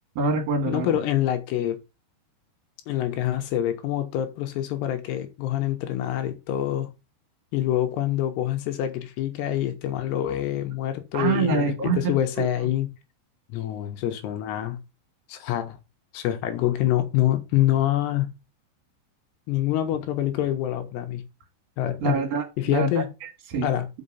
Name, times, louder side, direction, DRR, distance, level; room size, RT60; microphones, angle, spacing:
voice 1, 0.2-1.0 11.1-12.5 22.0-22.9 23.2-23.7, right 3 dB, 45° right, 2.5 m, -25 dB
voice 2, 0.7-1.8 2.9-6.9 7.5-12.9 13.5-14.8 15.3-15.8 16.1-18.3 19.5-21.2 21.8-22.2 22.6-23.1 23.6-23.9, left 12 dB, 80° left, 2.8 m, -26 dB
6.4 x 5.6 x 5.5 m
omnidirectional pair, 5.2 m